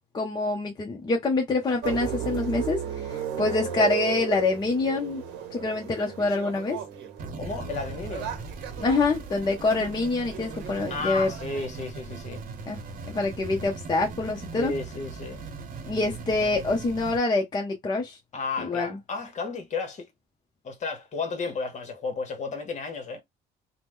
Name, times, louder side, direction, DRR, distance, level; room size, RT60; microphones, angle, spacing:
voice 1, 0.1-5.2 5.5-6.8 8.8-11.3 12.7-12.8 13.1-14.7 15.8-18.2 18.6-19.0, left 3 dB, 25° left, 0.7 m, -26 dB
sound 1, 1.8-11.7, right 9 dB, 90° right, 0.8 m, -35 dB
sound 2, 7.2-17.2, right 4 dB, 55° right, 0.8 m, -39 dB
voice 2, 7.4-8.3 10.9-12.4 14.6-15.4 18.3-20.1 20.6-23.2, left 4 dB, 45° left, 1.0 m, -33 dB
2.9 x 2.1 x 3.4 m
cardioid pair, 110°, 17 cm